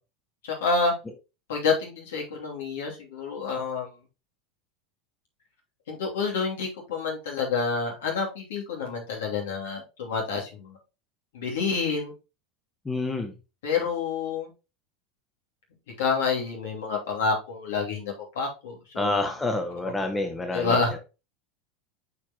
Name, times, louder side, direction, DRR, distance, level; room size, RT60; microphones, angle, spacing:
voice 1, 0.4-0.9 1.5-3.9 5.9-10.8 11.3-12.1 13.6-14.5 16.0-19.2 20.5-21.0, left 4 dB, 70° left, -1 dB, 2.8 m, -28 dB
voice 2, 12.8-13.3 19.0-21.0, left 2 dB, 15° left, 5 dB, 1.3 m, -28 dB
8.3 x 4.7 x 3.0 m, 0.29 s
figure-of-eight pair, 80°, 0 cm